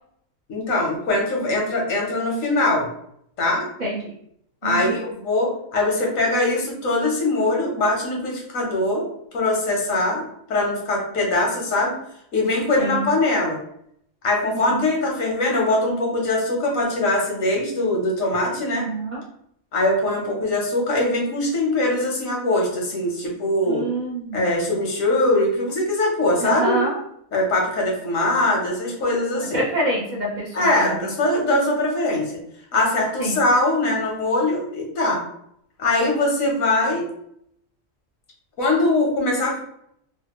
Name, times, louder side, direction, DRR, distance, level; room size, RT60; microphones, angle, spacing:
voice 1, 0.5-2.9 3.4-3.7 4.6-9.1 9.3-11.9 12.3-13.6 14.2-18.8 19.7-23.8 24.3-26.8 27.3-29.6 30.5-32.3 32.7-35.2 35.8-37.1 38.6-39.6, left 2 dB, 80° left, -1 dB, 1.3 m, -22 dB
voice 2, 3.8-4.1 4.6-5.0 12.8-13.1 14.5-14.8 18.7-19.2 23.6-24.5 26.4-27.0 29.4-31.1 33.2-33.4, right 1 dB, 40° right, -4 dB, 0.8 m, -27 dB
3.2 x 2.3 x 2.9 m, 0.71 s
omnidirectional pair, 1.4 m